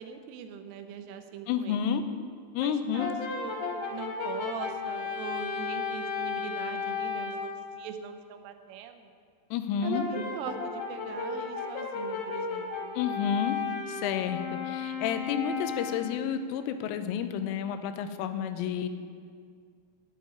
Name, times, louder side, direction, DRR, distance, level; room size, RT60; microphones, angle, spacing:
voice 1, 0.0-1.8 2.6-3.6 3.9-9.1 9.8-13.0, right 7 dB, 85° right, 7 dB, 3.4 m, -41 dB
voice 2, 1.5-2.0 2.5-3.1 9.5-10.1 13.0-13.6 13.9-18.9, left 8 dB, 85° left, 10 dB, 3.3 m, -30 dB
Brass instrument, 3.0-7.5 9.9-16.2, left 5 dB, 55° left, 3.1 m, -34 dB
11.0 x 7.7 x 9.5 m, 2.1 s
omnidirectional pair, 5.7 m